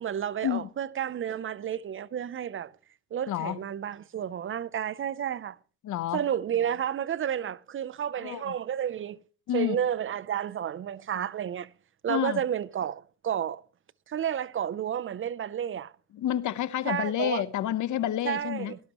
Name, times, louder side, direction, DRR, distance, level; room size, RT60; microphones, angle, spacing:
voice 1, 0.0-2.7 3.1-5.6 6.1-9.2 9.5-11.7 12.0-13.6 14.1-15.9 16.8-17.4 18.2-18.8, right 9 dB, 45° right, 0.5 m, -31 dB
voice 2, 3.3-3.6 5.8-6.2 8.2-8.5 9.5-9.8 12.1-12.4 16.1-18.7, left 11 dB, 75° left, 0.9 m, -29 dB
17.5 x 12.0 x 3.0 m
cardioid pair, 90°, 30 cm